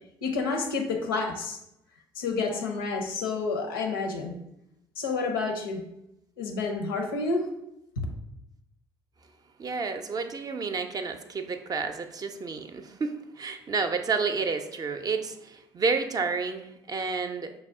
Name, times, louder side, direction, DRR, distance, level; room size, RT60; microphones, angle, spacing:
voice 1, 0.2-1.6 2.2-4.4 5.0-5.8 6.4-7.5 8.0-8.1, left 4 dB, 85° left, 3 dB, 0.5 m, -29 dB
voice 2, 9.6-17.5, right 4 dB, 35° right, 8 dB, 0.5 m, -30 dB
5.3 x 2.1 x 3.5 m, 0.83 s
hypercardioid pair, 55°, 11 cm